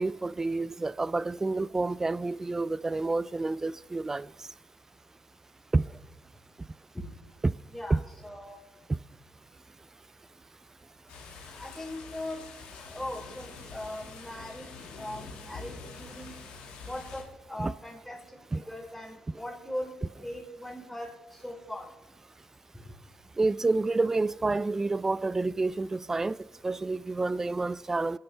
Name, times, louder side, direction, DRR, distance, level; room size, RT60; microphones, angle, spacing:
voice 1, 0.0-4.3 5.7-5.8 7.4-7.5 7.9-8.0 8.9-9.0 17.6-17.7 18.5-18.6 23.4-26.4 26.6-28.2, right 3 dB, 20° right, 0.4 m, -28 dB
voice 2, 7.7-8.6 11.5-12.4 12.9-16.4 16.8-19.9 20.2-21.9 22.7-22.9, left 1 dB, 5° left, 4.5 m, -40 dB
sound 1, 11.1-17.2, left 4 dB, 85° left, 1.9 m, -46 dB
24.0 x 10.5 x 3.4 m
supercardioid pair, 65°, 2 cm